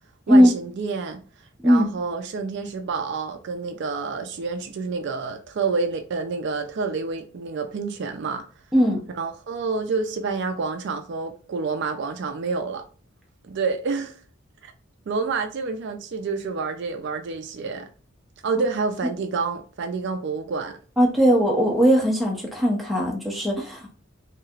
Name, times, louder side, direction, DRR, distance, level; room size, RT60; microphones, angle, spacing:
voice 1, 0.3-1.2 1.6-8.4 9.2-12.8 13.4-14.2 14.6-14.7 15.1-17.9 18.4-20.8, right 4 dB, 55° right, 0.4 m, -28 dB
voice 2, 21.0-23.9, equal, ahead, 0.7 m, -18 dB
3.1 x 2.7 x 2.4 m
head